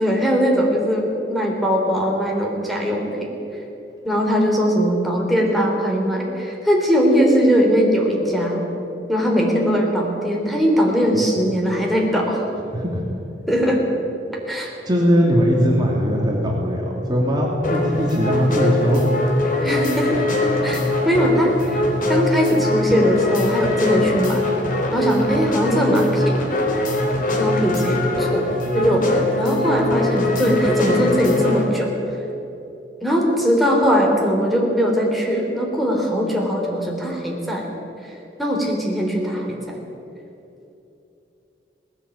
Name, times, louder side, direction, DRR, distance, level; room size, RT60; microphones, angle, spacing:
voice 1, 0.0-3.2 4.0-8.6 9.1-12.5 13.5-13.8 14.5-14.7 19.6-20.2 20.6-20.8 21.0-24.4 24.9-26.6 27.4-28.5 28.7-31.9 33.0-37.7 38.4-39.8, equal, ahead, -1 dB, 3.6 m, -20 dB
voice 2, 12.7-13.2 14.8-19.1, equal, 25° right, -2 dB, 3.0 m, -20 dB
sound 1, 17.6-31.7, left 2 dB, 50° left, 3.4 m, -22 dB
19.0 x 17.0 x 8.6 m, 2.9 s
head